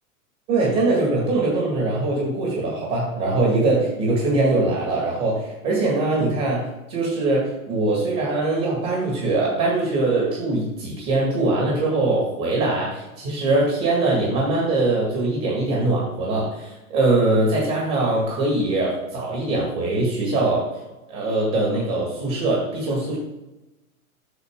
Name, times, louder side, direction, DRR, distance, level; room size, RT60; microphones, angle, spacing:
voice 1, 0.5-20.7 21.1-23.2, right 2 dB, 25° right, -3 dB, 1.9 m, -22 dB
8.2 x 6.6 x 3.6 m, 1.0 s
supercardioid pair, 170°, 42 cm